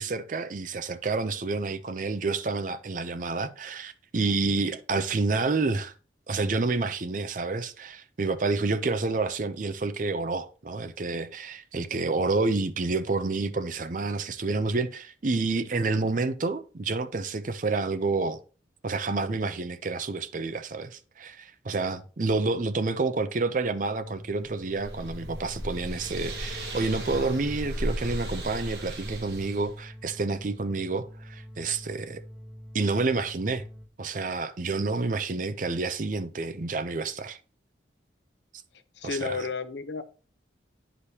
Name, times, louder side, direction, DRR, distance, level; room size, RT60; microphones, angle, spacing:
voice 1, 0.0-5.9 6.3-18.4 18.8-32.2 32.7-33.6 34.0-37.4 39.0-39.5, right 3 dB, 45° right, 0.5 m, -29 dB
sound 1, 23.9-33.9, equal, 10° right, 1.3 m, -45 dB
sound 2, 24.4-29.7, equal, 60° right, 1.5 m, -36 dB
voice 2, 39.0-40.0, left 4 dB, 70° left, 0.7 m, -32 dB
9.7 x 5.0 x 2.8 m
head